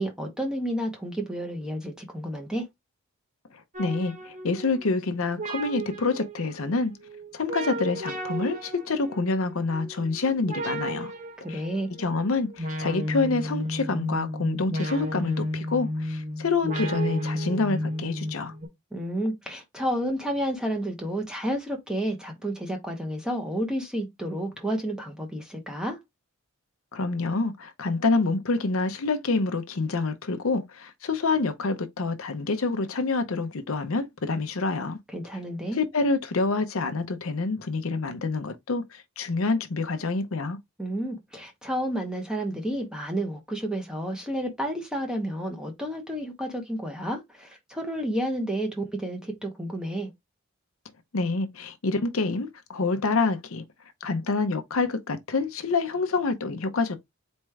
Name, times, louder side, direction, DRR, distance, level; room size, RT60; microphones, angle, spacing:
voice 1, 0.0-2.7 11.4-11.9 18.9-26.0 35.1-35.8 40.8-50.1, right 1 dB, 5° right, 1.0 m, -31 dB
voice 2, 3.5-6.9 7.3-11.1 11.5-11.6 12.0-18.5 26.9-35.0 35.7-40.6 51.1-53.6 54.0-57.0, left 3 dB, 65° left, 0.7 m, -27 dB
sound 1, 3.7-18.7, equal, 35° right, 1.1 m, -33 dB
4.4 x 3.1 x 3.5 m
head